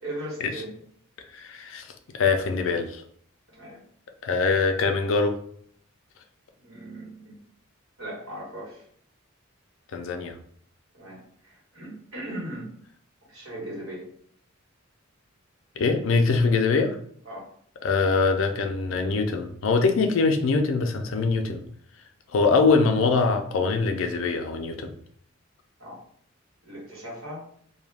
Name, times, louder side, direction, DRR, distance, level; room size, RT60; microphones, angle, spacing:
voice 1, 0.0-0.7 3.5-3.8 6.6-7.4 8.0-8.8 10.9-12.7 13.3-14.1 17.2-17.5 25.8-26.0 26.6-27.4, right 1 dB, 70° right, -5 dB, 1.3 m, -38 dB
voice 2, 1.3-3.0 4.2-5.4 9.9-10.4 15.8-17.0 17.8-21.6 22.3-24.9, left 4 dB, 65° left, 6 dB, 0.4 m, -23 dB
2.3 x 2.1 x 3.2 m, 0.62 s
head